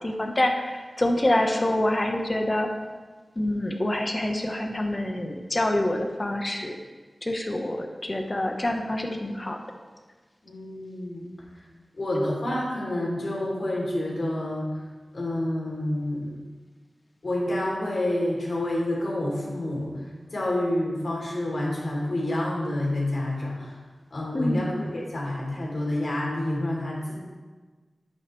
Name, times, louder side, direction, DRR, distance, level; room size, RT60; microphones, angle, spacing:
voice 1, 0.0-2.7 3.4-6.8 7.2-9.6 24.3-24.7, left 1 dB, 30° left, 3 dB, 1.1 m, -26 dB
voice 2, 10.4-11.3 12.0-14.7 15.1-16.3 17.2-19.9 20.3-23.7 24.1-27.2, left 1 dB, 70° left, -4 dB, 3.1 m, -28 dB
11.0 x 8.6 x 3.2 m, 1.4 s
wide cardioid pair, 80°, 0 cm